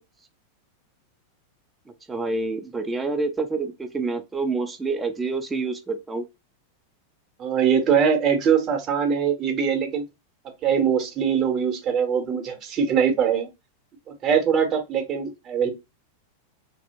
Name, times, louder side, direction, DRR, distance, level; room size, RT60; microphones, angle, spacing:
voice 1, 2.1-6.3, right 3 dB, 10° right, 0.4 m, -27 dB
voice 2, 7.4-10.0 10.6-13.5 14.2-15.7, right 7 dB, 30° right, 0.8 m, -22 dB
2.7 x 2.0 x 2.6 m
figure-of-eight pair, 90°, 0 cm